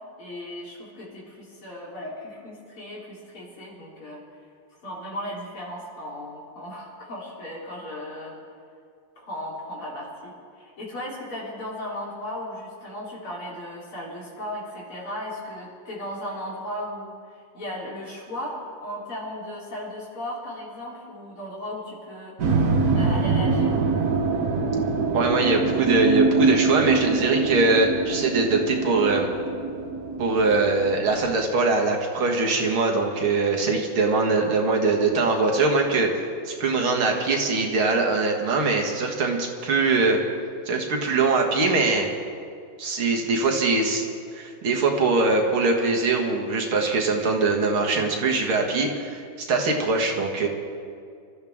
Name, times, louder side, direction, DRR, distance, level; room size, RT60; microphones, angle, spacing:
voice 1, 0.2-4.2 4.8-8.3 9.2-22.5 23.0-23.8, left 1 dB, 75° left, -5 dB, 4.4 m, -36 dB
sound 1, 22.4-31.3, right 3 dB, 50° right, 1.3 m, -24 dB
voice 2, 25.1-29.3 30.2-40.2 40.7-42.1 42.8-44.0 44.3-49.2 49.5-50.5, right 3 dB, 70° right, 1 dB, 2.4 m, -22 dB
25.0 x 13.5 x 3.6 m, 2.3 s
omnidirectional pair, 2.4 m